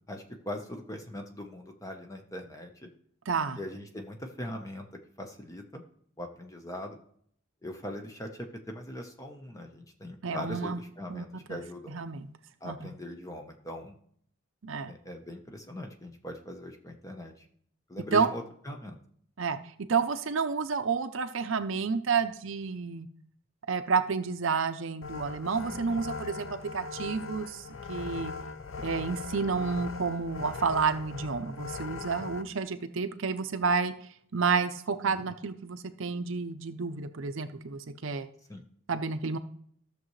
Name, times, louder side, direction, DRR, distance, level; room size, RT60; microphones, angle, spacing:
voice 1, 0.0-2.9 3.6-4.9 5.2-5.8 6.2-7.0 7.6-12.0 12.6-14.0 14.9-17.4 17.9-19.0 25.7-26.0 35.2-35.3 38.5-38.6, equal, 15° left, 4 dB, 0.9 m, -41 dB
voice 2, 3.3-3.6 10.2-10.8 11.1-11.6 11.9-12.3 12.6-12.9 14.6-14.9 18.1-18.3 19.4-23.1 23.7-28.3 28.8-33.9 34.3-38.3 38.9-39.4, right 5 dB, 65° right, 10 dB, 0.6 m, -30 dB
sound 1, 25.0-32.4, left 4 dB, 70° left, 0.6 m, -40 dB
13.5 x 6.7 x 3.2 m, 0.63 s
head